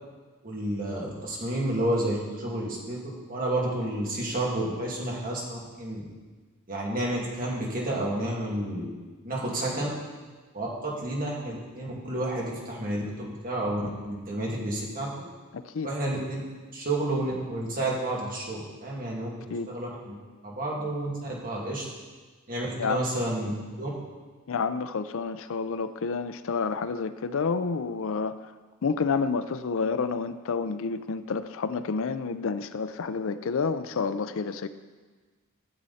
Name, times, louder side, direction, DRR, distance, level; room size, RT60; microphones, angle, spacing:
voice 1, 0.4-3.0 3.3-6.0 6.7-8.9 9.2-9.9 10.5-15.1 15.8-16.4 16.7-19.3 19.7-20.2 20.4-21.8 22.5-23.5 23.8-23.9, right 1 dB, 40° right, -4 dB, 2.4 m, -30 dB
voice 2, 15.5-15.9 19.5-19.7 22.8-23.0 24.5-28.5 28.8-34.7, left 5 dB, 65° left, 12 dB, 0.5 m, -29 dB
13.5 x 7.7 x 4.2 m, 1.4 s
head